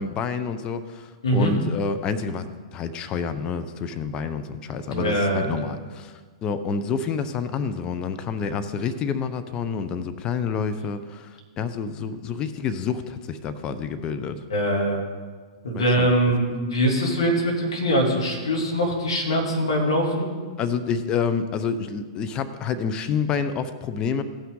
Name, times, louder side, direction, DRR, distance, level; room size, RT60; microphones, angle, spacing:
voice 1, 0.0-14.4 15.7-16.1 20.6-24.2, left 6 dB, 30° left, 10 dB, 0.7 m, -28 dB
voice 2, 4.9-5.5 14.5-15.0 15.6-20.3, equal, 75° left, -1 dB, 2.8 m, -22 dB
16.0 x 5.8 x 3.8 m, 1.5 s
hypercardioid pair, 115°, 3 cm